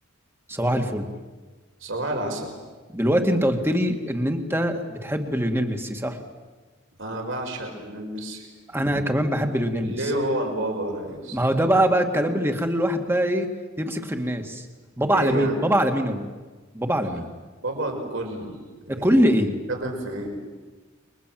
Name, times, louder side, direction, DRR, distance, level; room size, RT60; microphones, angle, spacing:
voice 1, 0.5-1.1 2.9-6.2 8.7-10.0 11.3-13.5 13.8-14.7 15.0-16.3 16.7-17.3 18.9-19.5, equal, 10° right, 5 dB, 2.1 m, -23 dB
voice 2, 1.8-2.5 7.0-8.5 9.7-11.4 15.1-15.6 17.6-19.3 19.7-20.3, right 1 dB, 65° right, 2 dB, 5.8 m, -29 dB
29.5 x 23.5 x 7.8 m, 1.3 s
head